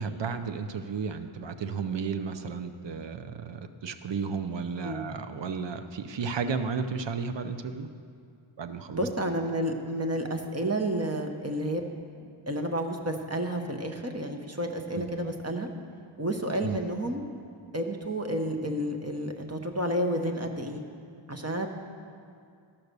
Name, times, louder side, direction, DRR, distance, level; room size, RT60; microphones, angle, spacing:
voice 1, 0.0-7.9 8.6-9.1 14.9-15.1 16.6-16.8, right 5 dB, 60° right, 9 dB, 0.7 m, -33 dB
voice 2, 8.9-11.8 12.5-15.7 16.2-17.2 17.7-20.8 21.3-21.7, right 1 dB, 30° right, 4 dB, 1.0 m, -30 dB
13.5 x 5.8 x 6.7 m, 2.3 s
wide cardioid pair, 65°, 49 cm